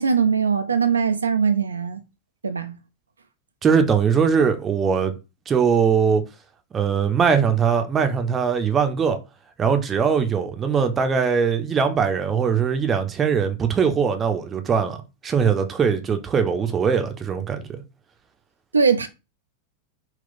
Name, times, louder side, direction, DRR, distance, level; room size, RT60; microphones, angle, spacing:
voice 1, 0.0-2.0 2.4-2.8 18.7-19.1, right 6 dB, 75° right, 0.4 m, -21 dB
voice 2, 3.6-5.1 5.5-6.2 6.7-9.2 9.6-15.0 15.2-17.7, right 6 dB, 20° right, 0.6 m, -21 dB
3.8 x 2.3 x 3.9 m
figure-of-eight pair, 90°, 0 cm